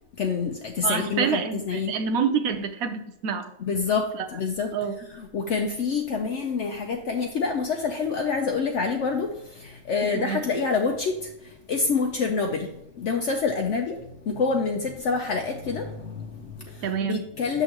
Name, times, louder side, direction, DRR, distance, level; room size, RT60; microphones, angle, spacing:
voice 1, 0.2-1.4 1.7-2.0 3.7-4.7 5.3-11.3 11.7-12.7 13.0-14.0 14.2-17.6, left 4 dB, 60° left, 3 dB, 0.9 m, -27 dB
voice 2, 0.8-3.5 4.1-4.3 4.7-5.1 10.0-10.7 16.8-17.2, right 6 dB, 85° right, 9 dB, 1.2 m, -28 dB
6.9 x 6.4 x 2.9 m, 0.87 s
omnidirectional pair, 1.5 m